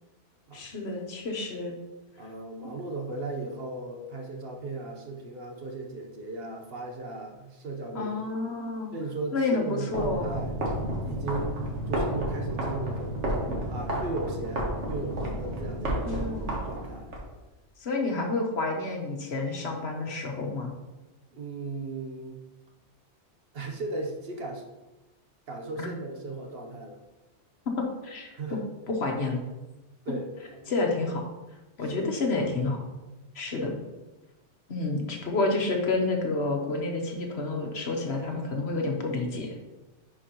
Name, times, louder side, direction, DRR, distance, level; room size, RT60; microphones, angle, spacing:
voice 1, 0.5-1.7 7.9-8.9 9.3-10.2 16.1-16.5 17.8-20.7 25.8-25.9 27.8-28.6 28.9-29.4 30.7-31.3 31.8-32.8 33.3-33.8 34.7-39.7, left 3 dB, 65° left, 2 dB, 1.3 m, -29 dB
voice 2, 2.2-8.3 8.9-10.6 11.0-13.3 13.7-16.3 16.6-17.1 21.3-22.4 23.5-24.6 25.5-27.0 28.3-28.6 30.0-30.7 31.8-32.1 33.5-33.8, right 2 dB, 60° right, 2 dB, 1.1 m, -37 dB
sound 1, 9.9-17.2, right 1 dB, 90° right, 1.7 m, -31 dB
10.5 x 4.6 x 2.9 m, 1.1 s
omnidirectional pair, 1.2 m